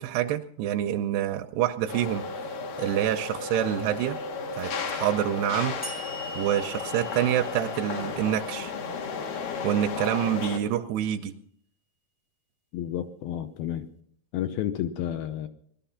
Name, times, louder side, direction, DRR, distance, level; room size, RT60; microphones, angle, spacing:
voice 1, 0.0-2.2 2.8-4.2 4.6-5.7 6.3-8.7 9.6-11.3, right 11 dB, 80° right, 5 dB, 2.7 m, -27 dB
sound 1, 1.9-10.6, left 5 dB, 60° left, 2.8 m, -34 dB
sound 2, 5.8-9.2, right 1 dB, 25° left, 0.6 m, -43 dB
voice 2, 12.7-13.9 14.3-15.5, left 11 dB, 75° left, 8 dB, 2.5 m, -31 dB
19.0 x 12.0 x 5.7 m, 0.65 s
omnidirectional pair, 4.7 m